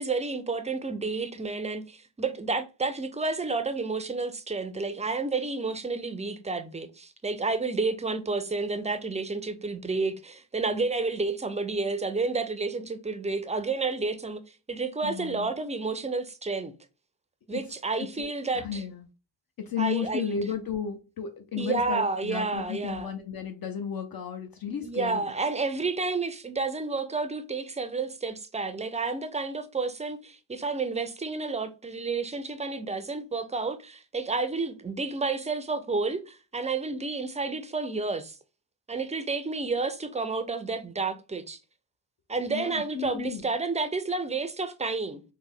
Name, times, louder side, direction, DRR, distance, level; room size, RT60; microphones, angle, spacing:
voice 1, 0.0-14.4 14.7-16.7 17.5-18.8 19.8-20.4 21.6-23.1 24.8-38.4 38.9-41.6 42.3-45.2, right 3 dB, 15° right, 0.4 m, -30 dB
voice 2, 15.0-15.5 17.5-17.6 18.0-18.3 18.5-19.1 19.6-25.3 42.5-43.5, left 7 dB, 50° left, 0.6 m, -34 dB
3.3 x 2.1 x 3.5 m
cardioid pair, 75°, 44 cm